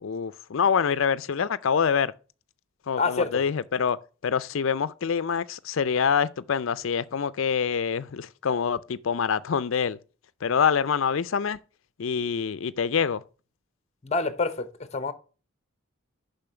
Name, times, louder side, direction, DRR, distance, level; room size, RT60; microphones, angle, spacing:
voice 1, 0.0-2.1 2.9-10.0 10.4-11.6 12.0-13.2, left 6 dB, 70° left, 0.5 m, -25 dB
voice 2, 3.0-3.4 14.0-15.1, left 3 dB, 30° left, 0.7 m, -27 dB
7.0 x 5.6 x 6.7 m
head